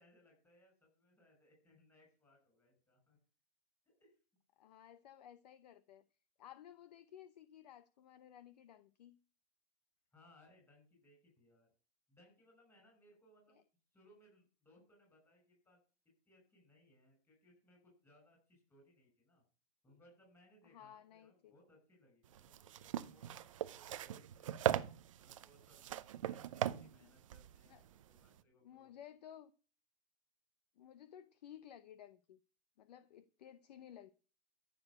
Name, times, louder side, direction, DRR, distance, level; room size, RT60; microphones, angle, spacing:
voice 1, 0.0-3.2 3.8-4.2 10.1-11.7 12.1-13.6 13.9-15.8 16.3-19.4 19.8-24.6 25.2-26.0 26.3-28.9, equal, 5° left, 6.2 m, -68 dB
voice 2, 4.6-6.0 6.4-9.2 20.7-21.6 27.0-27.1 27.7-27.8 28.6-29.5 30.8-32.4 32.8-34.1, left 10 dB, 40° left, 0.8 m, -56 dB
sound 1, 22.3-28.4, right 11 dB, 30° right, 0.5 m, -40 dB
14.0 x 7.0 x 8.5 m
hypercardioid pair, 165°, 33 cm